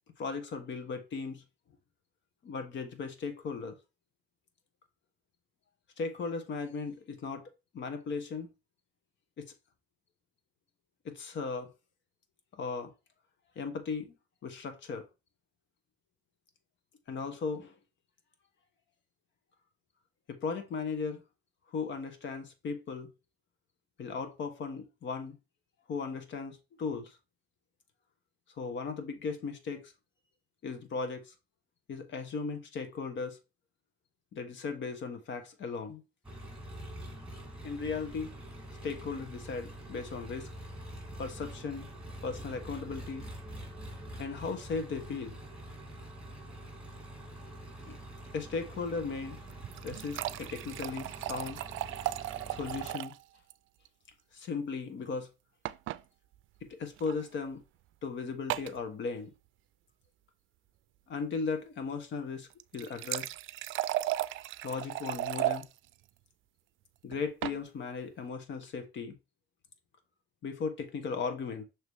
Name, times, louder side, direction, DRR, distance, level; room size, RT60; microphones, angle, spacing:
voice 1, 0.2-1.4 2.4-3.8 6.0-7.5 7.7-8.5 9.4-9.5 11.0-11.7 12.6-12.9 13.5-14.1 14.4-15.0 17.1-17.7 20.3-21.2 21.7-23.1 24.0-25.4 25.9-27.2 28.6-29.9 30.6-31.3 31.9-33.4 34.3-36.0 37.6-38.4 38.8-40.5 41.2-41.9 42.2-43.3 44.2-45.4 47.9-48.0 48.3-49.4 49.8-51.6 52.5-53.1 54.3-55.3 56.7-57.6 58.0-59.3 61.1-63.3 64.6-65.7 67.0-69.2 70.4-71.6, left 4 dB, 65° left, 1.4 m, -37 dB
Engine, 36.2-52.9, right 1 dB, 5° right, 2.1 m, -45 dB
sound 1, 49.5-53.2 53.5-53.6 53.8-53.9 55.6-56.0 57.0-57.1 58.5-58.8 62.5-65.6 67.1-67.6, right 15 dB, 80° right, 0.4 m, -35 dB
6.6 x 3.2 x 4.7 m
cardioid pair, 90°, 20 cm